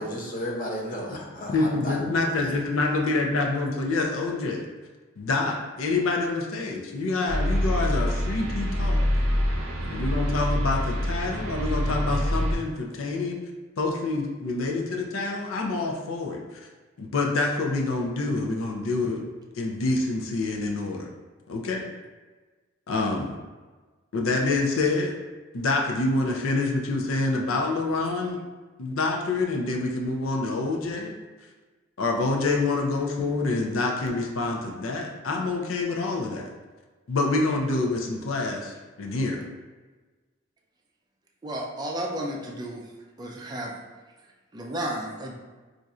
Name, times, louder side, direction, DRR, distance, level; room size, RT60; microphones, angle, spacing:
voice 1, 0.0-2.0, equal, 40° left, -1 dB, 0.6 m, -33 dB
voice 2, 1.5-4.6 5.2-9.1 9.9-13.4 13.8-16.4 17.0-19.2 19.5-21.1 21.5-21.8 22.9-23.3 24.1-25.1 25.5-28.4 28.8-31.1 32.0-36.5 37.1-39.4, left 3 dB, 85° left, 0 dB, 0.5 m, -27 dB
sound 1, 7.3-12.5, equal, 90° right, 0.6 m, -26 dB
voice 3, 41.4-42.8 43.2-43.7 44.5-45.3, right 1 dB, 20° right, -1 dB, 0.4 m, -32 dB
2.5 x 2.4 x 4.1 m, 1.3 s
head